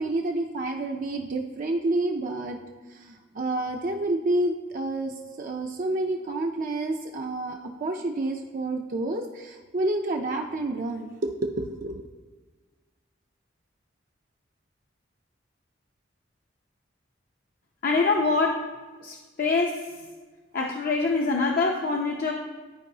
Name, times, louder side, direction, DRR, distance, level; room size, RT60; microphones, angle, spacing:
voice 1, 0.0-2.6 2.9-12.1, right 2 dB, 45° right, 2 dB, 0.5 m, -29 dB
voice 2, 17.8-18.6 19.0-20.0 20.5-22.3, left 3 dB, 50° left, 1 dB, 0.6 m, -25 dB
12.5 x 4.6 x 2.8 m, 1.3 s
head